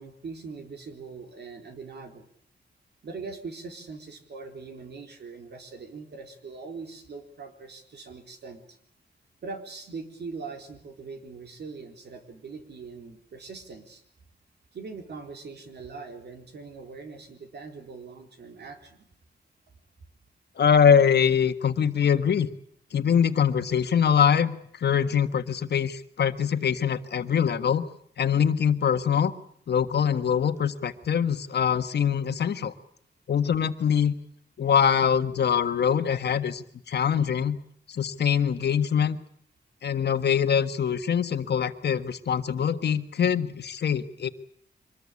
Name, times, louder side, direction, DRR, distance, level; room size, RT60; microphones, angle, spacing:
voice 1, 0.0-2.3 3.0-8.8 9.4-14.0 14.7-19.1, right 4 dB, 70° right, 5 dB, 4.1 m, -41 dB
voice 2, 20.6-22.5 22.9-27.8 28.2-29.3 29.7-32.7 33.3-34.1 34.6-37.6 37.9-39.2 39.8-44.3, left 7 dB, 70° left, 10 dB, 1.5 m, -23 dB
25.0 x 20.5 x 8.5 m, 0.65 s
wide cardioid pair, 135°, 18 cm